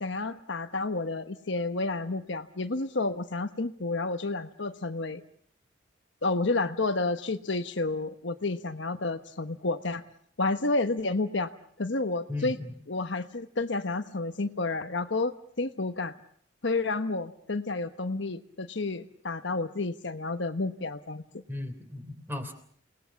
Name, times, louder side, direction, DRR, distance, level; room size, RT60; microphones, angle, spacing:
voice 1, 0.0-5.2 6.2-10.0 10.4-11.5 11.8-12.6 12.9-16.1 16.6-21.4, left 3 dB, 65° left, 8 dB, 1.2 m, -30 dB
voice 2, 12.3-12.8 21.5-22.5, left 2 dB, 10° right, 8 dB, 3.2 m, -36 dB
29.0 x 19.5 x 7.1 m, 0.62 s
head